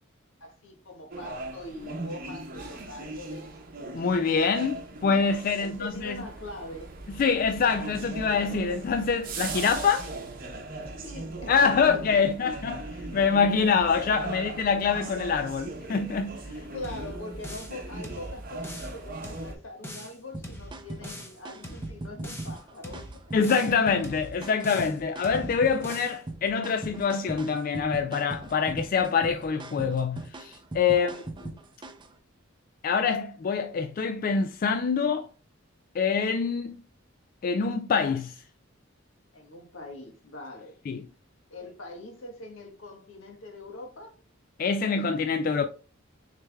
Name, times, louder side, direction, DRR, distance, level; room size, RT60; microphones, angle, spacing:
voice 1, 0.4-3.5 5.5-6.9 11.0-11.5 13.1-13.2 14.2-14.4 16.5-23.2 30.9-31.2 39.3-40.8 41.5-44.2, left 1 dB, 75° left, 1.4 m, -42 dB
sound 1, 1.1-19.5, right 2 dB, 45° right, 0.8 m, -39 dB
voice 2, 3.9-6.2 7.1-10.1 11.5-16.6 23.3-31.1 32.8-35.3 35.9-36.8 37.4-38.4 40.9-41.1 44.6-45.7, left 5 dB, 45° left, 0.3 m, -25 dB
sound 2, 16.8-17.8 18.0-19.0 19.2-20.2 20.4-21.4 21.6-22.6 22.8-23.8 24.0-25.0 25.2-26.2, equal, 10° left, 0.7 m, -42 dB
sound 3, 20.3-32.1, right 2 dB, 25° right, 0.5 m, -40 dB
6.5 x 3.3 x 2.2 m
head